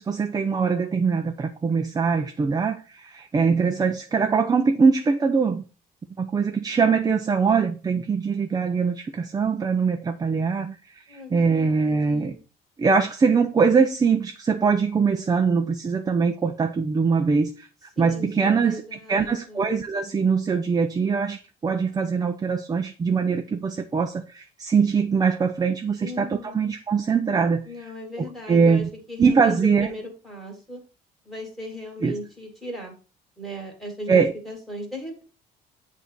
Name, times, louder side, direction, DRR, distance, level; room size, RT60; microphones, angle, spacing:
voice 1, 0.0-5.6 6.2-12.4 12.8-17.7 18.0-27.9 28.2-28.9 29.2-29.9 32.0-32.1 34.1-34.3, right 5 dB, 20° right, 0.5 m, -22 dB
voice 2, 11.1-12.4 18.0-19.7 26.0-26.6 27.7-30.8 31.2-32.9 33.4-35.2, left 1 dB, ahead, 2.3 m, -37 dB
7.8 x 2.7 x 4.5 m
cardioid pair, 110°, 17 cm